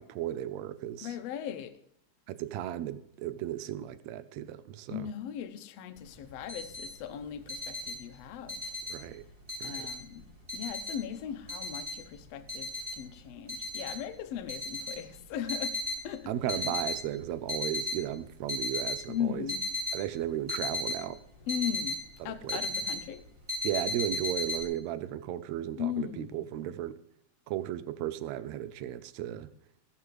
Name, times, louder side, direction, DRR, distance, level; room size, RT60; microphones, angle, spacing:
voice 1, 0.0-1.1 2.3-5.0 8.9-9.2 9.6-9.9 16.3-19.4 19.9-21.2 22.2-22.6 23.6-27.0 27.5-29.5, right 12 dB, 85° right, 1.6 m, -35 dB
voice 2, 1.0-1.8 4.9-8.8 9.6-16.8 19.1-19.7 21.4-23.3 25.8-26.4, left 9 dB, 70° left, 1.6 m, -38 dB
sound 1, 6.0-6.1 6.3-6.9 7.2-9.1 9.5-10.2 10.5-12.2 12.5-13.0 13.5-14.0 14.4-16.0 16.4-17.0 17.4-18.0 18.3-19.0 19.5-22.0 22.2-23.1 23.5-24.6, left 2 dB, 15° right, 2.7 m, -34 dB
16.0 x 11.0 x 3.2 m
omnidirectional pair, 3.8 m